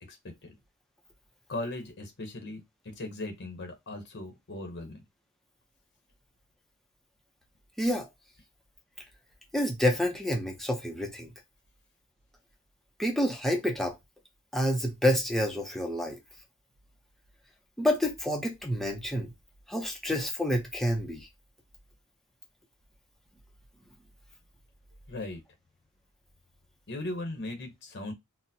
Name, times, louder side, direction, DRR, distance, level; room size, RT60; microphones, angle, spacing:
voice 1, 1.5-5.0 25.1-25.4 26.9-28.1, left 2 dB, 55° left, 0.8 m, -38 dB
voice 2, 7.8-8.1 9.5-11.3 13.0-14.0 14.5-16.2 17.8-19.3 19.7-21.3, equal, ahead, 0.6 m, -28 dB
4.0 x 2.1 x 2.7 m
head